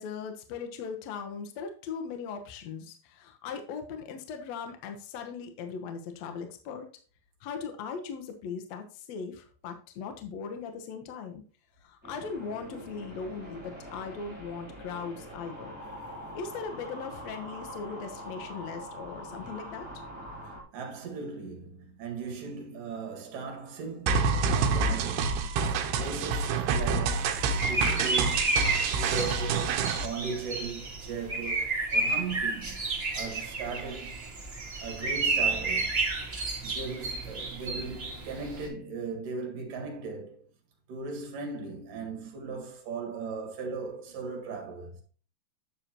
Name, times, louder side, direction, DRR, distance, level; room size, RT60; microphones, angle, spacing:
voice 1, 0.0-6.9 7.4-11.4 11.8-15.8 16.3-19.9, left 5 dB, 75° left, 1.5 m, -39 dB
sound 1, 12.0-20.6, equal, 5° right, 2.2 m, -43 dB
voice 2, 20.4-25.5 26.0-27.3 27.7-28.6 29.0-32.9 33.1-34.2 34.8-36.0 36.6-40.4 40.9-45.0, right 4 dB, 60° right, 3.2 m, -38 dB
sound 2, 24.1-30.1, right 4 dB, 90° right, 2.8 m, -27 dB
sound 3, 27.1-38.7, right 3 dB, 40° right, 0.8 m, -31 dB
9.7 x 6.6 x 2.9 m
omnidirectional pair, 4.5 m